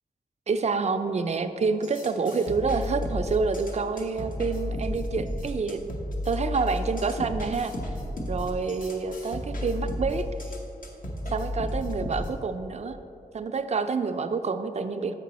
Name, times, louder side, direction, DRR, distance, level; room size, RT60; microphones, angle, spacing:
voice 1, 0.5-5.8 6.2-7.7 8.3-10.3 11.3-13.0 13.3-15.1, right 4 dB, 45° right, 8 dB, 0.4 m, -28 dB
sound 1, 1.8-12.3, left 1 dB, 60° left, 1.0 m, -33 dB
7.5 x 4.8 x 4.0 m, 2.7 s
wide cardioid pair, 95°, 16 cm